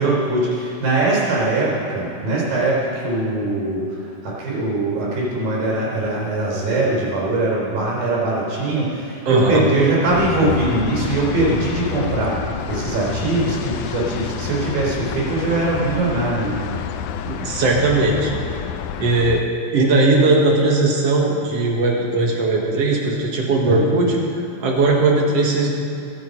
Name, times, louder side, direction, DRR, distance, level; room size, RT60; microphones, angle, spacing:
voice 1, 0.0-16.6 23.6-23.9, right 2 dB, 70° right, -4 dB, 5.5 m, -21 dB
voice 2, 9.3-9.7 17.2-18.4 19.0-19.4 19.7-24.2 24.6-25.7, right 2 dB, 50° right, -1 dB, 2.5 m, -18 dB
sound 1, 10.1-19.4, left 8 dB, 90° left, 1.7 m, -29 dB
23.0 x 8.2 x 5.4 m, 2.7 s
omnidirectional pair, 4.1 m